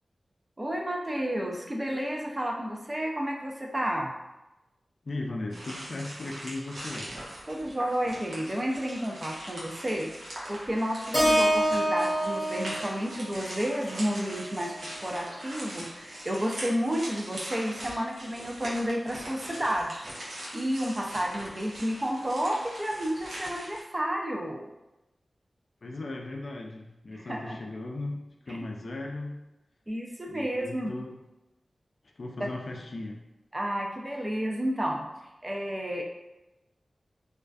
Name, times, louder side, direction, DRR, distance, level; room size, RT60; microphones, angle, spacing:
voice 1, 0.6-4.1 7.5-10.1 10.5-20.1 20.5-24.7 27.3-27.6 28.5-28.6 29.9-30.9 32.4-32.5 33.5-35.1 35.4-36.0, equal, 30° right, 0 dB, 0.5 m, -31 dB
voice 2, 5.0-7.1 25.8-29.4 30.3-31.2 32.2-33.2, left 2 dB, 65° left, 1 dB, 0.3 m, -37 dB
sound 1, 5.5-23.8, right 1 dB, 85° right, 0.7 m, -41 dB
Keyboard (musical), 11.1-15.4, equal, 25° left, 0.7 m, -28 dB
2.4 x 2.2 x 2.3 m, 0.98 s
cardioid pair, 45°, 0 cm